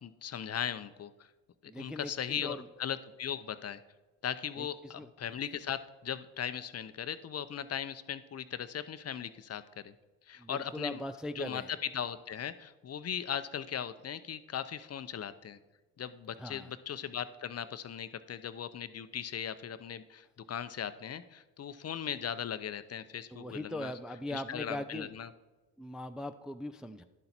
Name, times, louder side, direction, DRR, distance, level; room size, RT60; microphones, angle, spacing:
voice 1, 0.0-1.1 1.8-3.8 4.2-9.9 10.3-11.0 11.3-15.6 16.0-23.9 24.3-25.3, left 8 dB, 35° left, 12 dB, 0.7 m, -38 dB
voice 2, 1.7-2.1 2.4-2.6 4.6-4.7 5.0-5.1 10.4-11.7 16.4-16.7 23.3-25.1 25.8-27.0, left 1 dB, ahead, 8 dB, 0.5 m, -40 dB
11.0 x 7.8 x 4.3 m, 1.2 s
hypercardioid pair, 60°, 41 cm